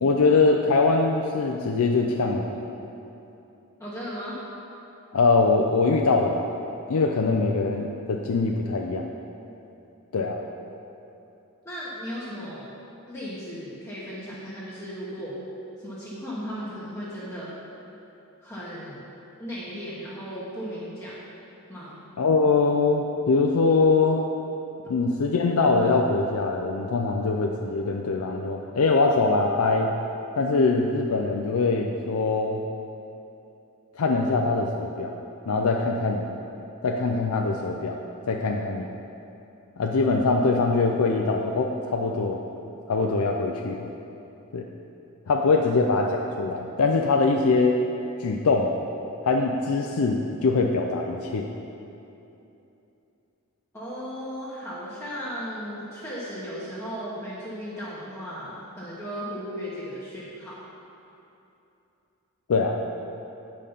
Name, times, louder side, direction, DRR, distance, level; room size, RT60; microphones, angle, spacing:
voice 1, 0.0-2.7 5.1-6.5 6.9-9.1 10.1-10.4 22.2-24.3 24.9-29.9 30.4-32.6 34.0-35.1 35.5-36.3 36.8-38.0 38.3-38.9 39.8-42.4 42.9-43.9 44.5-44.6 45.3-47.8 48.2-48.7 49.2-51.5 62.5-62.8, left 3 dB, 85° left, 1 dB, 0.5 m, -23 dB
voice 2, 3.8-4.4 11.6-12.7 13.1-15.4 15.8-17.5 18.4-19.0 19.4-21.2 21.7-22.0 53.7-60.6, equal, 15° left, -9 dB, 1.2 m, -36 dB
8.5 x 5.2 x 5.6 m, 2.9 s
head